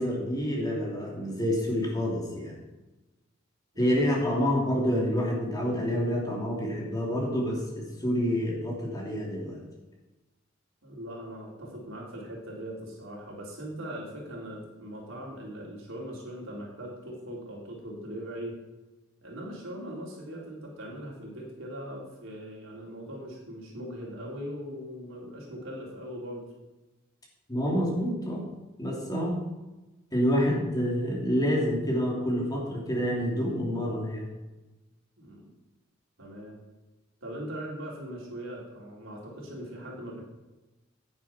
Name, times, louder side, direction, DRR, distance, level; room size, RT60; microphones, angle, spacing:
voice 1, 0.0-2.5 3.8-9.6 27.5-28.5 28.8-29.4 30.1-34.3, equal, 20° left, -2 dB, 2.9 m, -28 dB
voice 2, 10.8-18.6 19.2-26.5 35.2-35.5 36.2-36.6 37.2-40.2, equal, 80° right, -3 dB, 4.0 m, -40 dB
10.0 x 10.0 x 4.4 m, 1.1 s
head